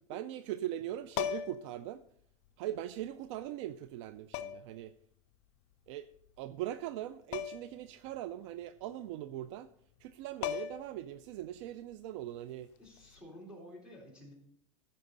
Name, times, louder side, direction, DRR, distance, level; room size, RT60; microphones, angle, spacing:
voice 1, 0.1-2.0 2.6-4.9 5.9-6.1 6.4-9.7 10.0-12.7, right 12 dB, 55° right, 14 dB, 0.4 m, -40 dB
sound 1, 1.1-1.7 3.0-3.1 4.3-4.8 7.3-7.8 8.1-8.2 10.0-10.1 10.4-11.0 13.0-13.2, left 11 dB, 55° left, 0.5 m, -37 dB
voice 2, 12.8-14.3, equal, 5° right, -3 dB, 3.5 m, -51 dB
14.5 x 5.2 x 3.9 m, 0.68 s
supercardioid pair, 145°, 18 cm